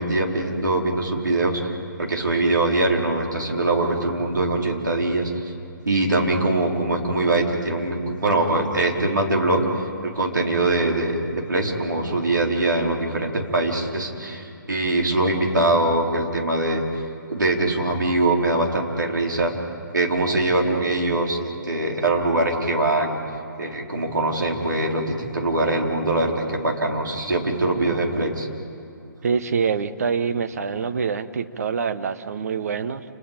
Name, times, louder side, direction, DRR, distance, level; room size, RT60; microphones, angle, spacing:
voice 1, 0.0-1.7 2.0-5.5 5.8-9.6 10.0-16.8 17.3-19.5 19.9-23.2 23.6-28.5, right 2 dB, 65° right, -1 dB, 4.5 m, -22 dB
voice 2, 29.2-33.0, right 6 dB, 50° right, 10 dB, 1.2 m, -25 dB
30.0 x 29.5 x 5.3 m, 2.6 s
figure-of-eight pair, 135°, 11 cm